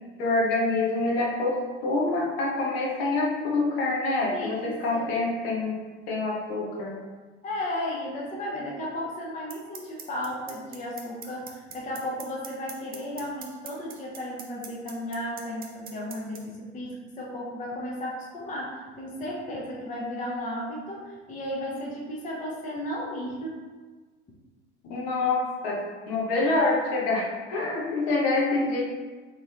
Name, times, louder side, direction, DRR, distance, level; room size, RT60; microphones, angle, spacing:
voice 1, 0.2-5.8 6.1-7.0 24.8-28.8, left 2 dB, 55° left, -2 dB, 0.9 m, -26 dB
voice 2, 4.3-5.1 7.4-23.6 28.3-28.4 28.7-28.8, left 1 dB, 20° left, -3 dB, 0.7 m, -34 dB
sound 1, 9.5-16.4, right 7 dB, 25° right, 0.5 m, -40 dB
3.8 x 3.2 x 2.4 m, 1.4 s
figure-of-eight pair, 70°, 35 cm